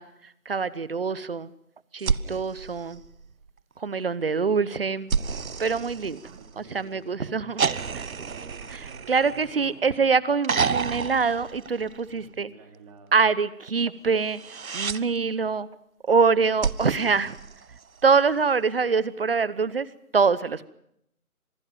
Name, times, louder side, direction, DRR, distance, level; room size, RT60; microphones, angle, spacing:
voice 1, 0.0-1.5 1.9-3.0 3.8-5.1 5.6-7.6 7.9-8.0 8.7-12.5 13.1-15.7 16.1-17.4 18.0-19.9 20.1-20.7, right 5 dB, 40° right, 19 dB, 1.0 m, -25 dB
sound 1, 2.0-3.6 5.1-6.8 7.6-9.9 10.4-12.3 14.2-15.0 16.6-18.1 19.6-19.7, right 5 dB, 70° right, 1.0 m, -30 dB
voice 2, 6.2-10.0 12.1-13.1, right 5 dB, 20° right, 5 dB, 3.0 m, -50 dB
26.0 x 18.5 x 7.6 m, 0.77 s
figure-of-eight pair, 155°, 44 cm